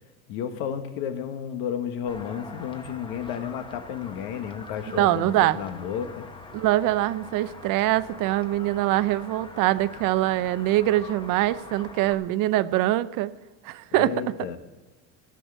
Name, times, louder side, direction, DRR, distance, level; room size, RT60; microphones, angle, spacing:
voice 1, 0.3-6.2 13.9-14.6, left 8 dB, 85° left, 7 dB, 1.5 m, -32 dB
sound 1, 2.1-12.1, left 3 dB, 15° left, 1.0 m, -44 dB
voice 2, 4.9-5.6 6.5-13.3 13.6-14.1, right 15 dB, 60° right, 15 dB, 0.6 m, -23 dB
16.0 x 6.4 x 7.9 m, 1.2 s
cardioid pair, 140°, 37 cm